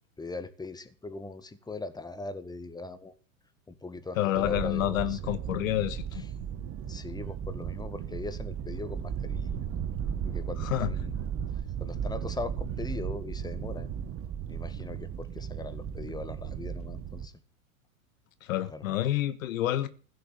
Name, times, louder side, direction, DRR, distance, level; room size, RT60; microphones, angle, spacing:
voice 1, 0.2-3.1 3.7-5.2 6.1-6.3 6.9-9.7 10.3-11.4 11.8-13.9 14.5-17.3 18.7-18.8, left 3 dB, 10° left, 1.7 m, -40 dB
voice 2, 4.2-6.0 10.6-10.9 18.5-19.9, left 13 dB, 70° left, 1.7 m, -28 dB
sound 1, 4.3-17.3, right 8 dB, 30° right, 1.5 m, -35 dB
16.0 x 6.8 x 9.7 m
hypercardioid pair, 110°, 42 cm